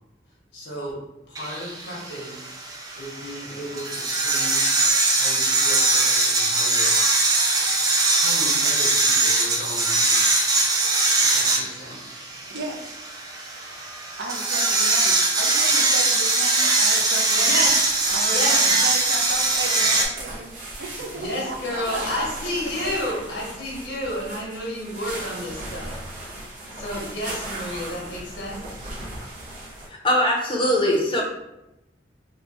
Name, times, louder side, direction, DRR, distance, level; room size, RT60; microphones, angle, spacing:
voice 1, 0.5-1.0 1.3-2.4 3.0-4.7 5.1-6.9 7.6-7.8 8.1-10.2 11.2-12.0 13.3-13.7 14.0-14.2 17.4-17.8 18.3-18.7 21.0-25.9 26.8-28.7, left 1 dB, 80° left, -3 dB, 1.0 m, -32 dB
sound 1, 1.4-20.1, right 2 dB, 20° right, 0.4 m, -21 dB
voice 2, 12.0-13.0 14.2-17.7 18.1-20.5 20.8-22.3 22.8-22.9, right 2 dB, 70° right, 2 dB, 0.5 m, -35 dB
sound 2, 17.3-29.9, right 1 dB, 45° right, 0.9 m, -38 dB
voice 3, 30.0-31.2, equal, 30° left, -1 dB, 0.6 m, -21 dB
3.0 x 2.1 x 4.0 m, 0.92 s
head